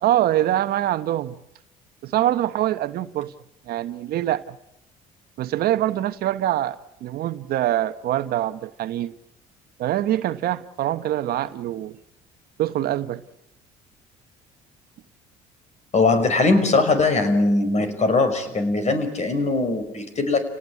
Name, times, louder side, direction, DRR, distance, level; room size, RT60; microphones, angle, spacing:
voice 1, 0.0-1.4 2.0-3.3 3.7-4.6 5.4-9.1 9.8-12.0 12.6-13.2, right 13 dB, 65° right, 1.1 m, -24 dB
voice 2, 15.9-20.4, left 3 dB, 40° left, 5.5 m, -20 dB
29.5 x 18.5 x 8.5 m
supercardioid pair, 75°, 17 cm